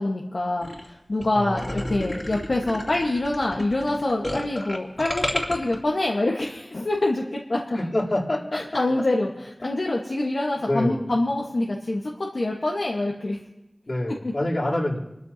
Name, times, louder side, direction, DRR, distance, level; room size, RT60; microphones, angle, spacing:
voice 1, 0.0-7.8 8.5-13.4 14.2-14.3, left 2 dB, 80° left, -1 dB, 1.3 m, -25 dB
sound 1, 0.6-0.9 1.2-1.3 1.6-5.8, left 1 dB, 30° left, 2.5 m, -31 dB
voice 2, 1.3-2.2 7.7-8.6 10.7-11.0 13.9-15.0, left 1 dB, 65° left, -5 dB, 3.4 m, -27 dB
27.0 x 13.0 x 2.8 m, 0.93 s
wide cardioid pair, 55°, 0 cm